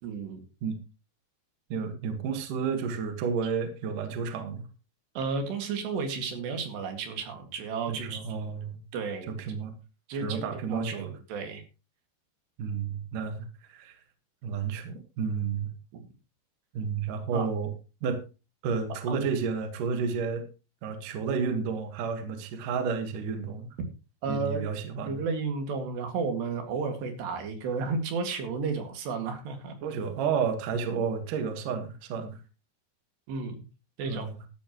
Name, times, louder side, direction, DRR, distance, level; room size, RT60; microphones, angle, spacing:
voice 1, 0.0-0.4 5.2-8.2 8.9-9.4 10.1-11.6 15.9-16.0 17.3-17.5 19.1-19.2 24.2-24.7 25.0-29.8 33.3-33.6 34.0-34.3, right 4 dB, 75° right, 6 dB, 4.2 m, -32 dB
voice 2, 1.7-4.7 7.9-8.8 9.3-9.8 10.1-11.1 12.6-14.0 14.4-15.7 16.7-17.7 18.0-18.2 18.6-20.5 20.8-23.7 24.2-25.2 29.8-32.4 34.1-34.4, right 6 dB, 60° right, 7 dB, 2.8 m, -31 dB
14.0 x 12.5 x 3.1 m, 0.31 s
omnidirectional pair, 5.0 m